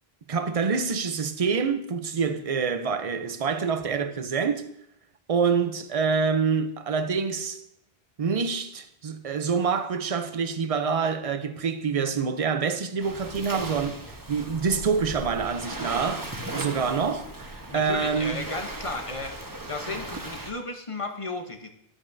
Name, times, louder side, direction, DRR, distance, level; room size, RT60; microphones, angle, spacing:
voice 1, 0.3-4.6 5.3-7.6 8.2-17.3 17.7-18.4, right 5 dB, 40° right, 0.6 m, -26 dB
Waves surf, 13.0-20.5, right 2 dB, 20° right, 1.0 m, -37 dB
voice 2, 17.7-19.4 19.7-21.7, left 3 dB, 35° left, 0.9 m, -34 dB
12.5 x 8.7 x 2.7 m
omnidirectional pair, 1.0 m